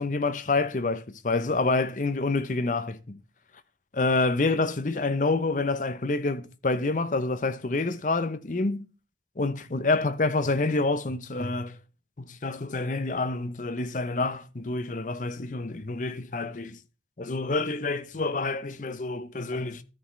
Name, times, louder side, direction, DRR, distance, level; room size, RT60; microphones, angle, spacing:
voice 1, 0.0-3.2 3.9-8.9 9.4-11.8 12.2-16.8 17.2-19.8, left 3 dB, 45° left, 0.7 m, -27 dB
13.5 x 7.2 x 3.2 m
head